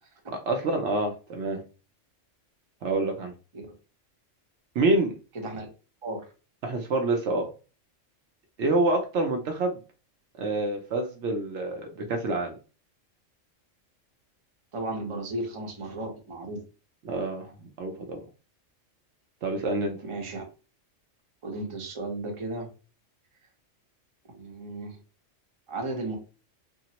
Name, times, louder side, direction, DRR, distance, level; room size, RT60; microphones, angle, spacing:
voice 1, 0.3-1.6 2.8-3.3 4.8-5.1 6.6-7.5 8.6-9.8 10.4-12.6 17.0-18.2 19.4-20.0, right 2 dB, 70° right, 4 dB, 0.9 m, -27 dB
voice 2, 5.3-5.7 6.0-6.3 14.7-16.6 20.0-20.4 21.4-22.7 24.3-25.0 25.7-26.2, right 2 dB, 30° right, 2 dB, 0.7 m, -34 dB
3.5 x 2.0 x 2.8 m, 0.34 s
omnidirectional pair, 1.3 m